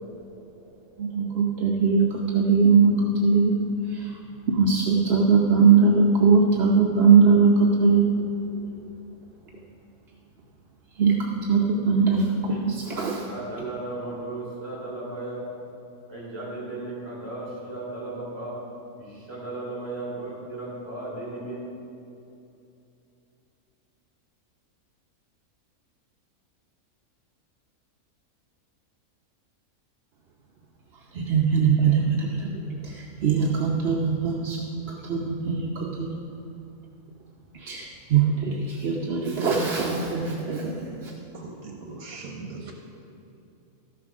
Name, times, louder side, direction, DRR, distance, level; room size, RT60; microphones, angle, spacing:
voice 1, 1.0-3.6 3.9-4.2 4.5-8.1 8.5-8.9 11.0-11.2 11.5-13.3 31.1-32.5 32.8-34.6 35.0-36.1 37.6-41.1, right 5 dB, 50° right, -1 dB, 0.9 m, -21 dB
voice 2, 13.3-15.5 16.1-18.6 19.0-21.6, right 2 dB, 15° right, -6 dB, 3.0 m, -35 dB
voice 3, 41.3-42.7, right 3 dB, 70° right, 1 dB, 1.3 m, -39 dB
13.0 x 6.1 x 6.0 m, 2.7 s
omnidirectional pair, 1.6 m